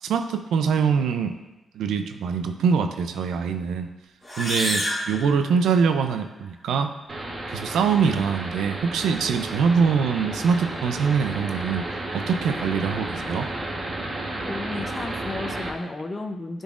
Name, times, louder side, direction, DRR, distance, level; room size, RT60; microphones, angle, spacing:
voice 1, 0.0-1.3 1.7-3.9 4.4-6.9 7.5-13.5, right 6 dB, 85° right, 8 dB, 0.4 m, -23 dB
sound 1, 4.2-6.1, equal, 15° left, 1.9 m, -29 dB
sound 2, 7.1-15.7, right 2 dB, 40° right, 1.1 m, -32 dB
voice 2, 14.5-16.6, left 2 dB, 35° left, 6 dB, 0.6 m, -33 dB
9.8 x 3.9 x 2.4 m, 1.0 s
cardioid pair, 65°, 0 cm